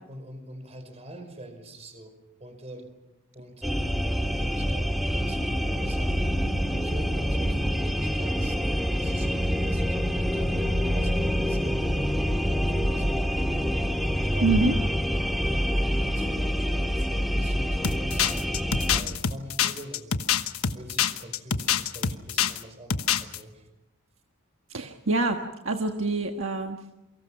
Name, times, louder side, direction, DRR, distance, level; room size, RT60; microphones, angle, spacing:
voice 1, 0.0-2.1 2.4-2.9 3.3-3.9 4.3-8.6 8.9-13.8 14.2-14.8 15.4-20.2 20.7-23.7, right 1 dB, 30° right, 7 dB, 5.4 m, -44 dB
sound 1, 3.6-19.0, equal, ahead, 2.0 m, -26 dB
voice 2, 14.4-14.7 24.7-25.4 25.6-26.8, right 3 dB, 65° right, 4 dB, 1.5 m, -25 dB
sound 2, 17.8-22.6 22.9-23.4, left 8 dB, 80° left, 1.2 m, -25 dB
28.5 x 24.0 x 5.9 m, 0.98 s
head